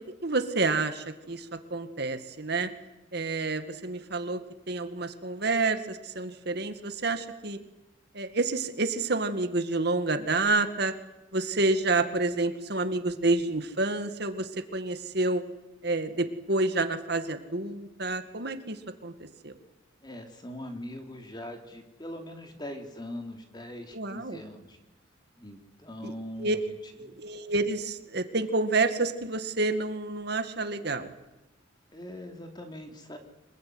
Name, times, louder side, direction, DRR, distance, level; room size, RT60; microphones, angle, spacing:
voice 1, 0.2-2.7 3.1-4.4 4.7-7.6 8.1-10.9 11.3-15.4 15.8-19.1 19.4-19.5 23.9-24.4 26.0-26.1 26.4-26.6 27.0-31.1, right 3 dB, 55° right, 8 dB, 2.1 m, -29 dB
voice 2, 20.0-24.8 25.4-26.8 27.0-27.2 31.9-33.2, left 1 dB, 20° left, 4 dB, 3.4 m, -41 dB
25.5 x 22.0 x 9.6 m, 1.0 s
head